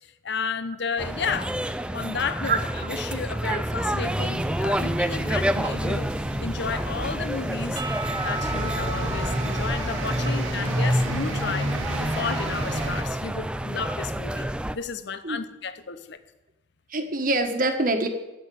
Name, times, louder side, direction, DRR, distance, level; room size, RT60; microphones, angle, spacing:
voice 1, 0.2-1.5 1.9-6.1 6.4-7.8 8.2-16.2, left 5 dB, 60° left, 0.8 m, -32 dB
sound 1, 1.0-14.8, right 1 dB, 5° right, 0.3 m, -29 dB
sound 2, 4.2-13.0, equal, 75° right, 1.6 m, -30 dB
Percussion / Church bell, 7.8-11.9, right 2 dB, 25° right, 0.9 m, -37 dB
voice 2, 16.9-18.1, right 2 dB, 45° right, 1.5 m, -24 dB
14.5 x 6.2 x 9.3 m
head